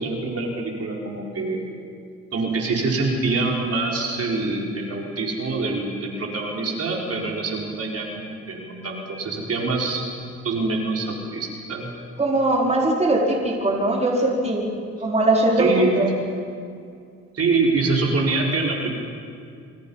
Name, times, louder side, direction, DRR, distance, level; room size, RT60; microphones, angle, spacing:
voice 1, 0.0-1.6 2.3-10.0 10.4-11.9 15.6-15.9 17.3-18.9, right 3 dB, 50° right, -1 dB, 4.5 m, -25 dB
voice 2, 12.2-14.7 15.0-16.1, right 2 dB, 20° right, -1 dB, 4.5 m, -20 dB
27.5 x 25.0 x 5.6 m, 2.3 s
cardioid pair, 90°, 30 cm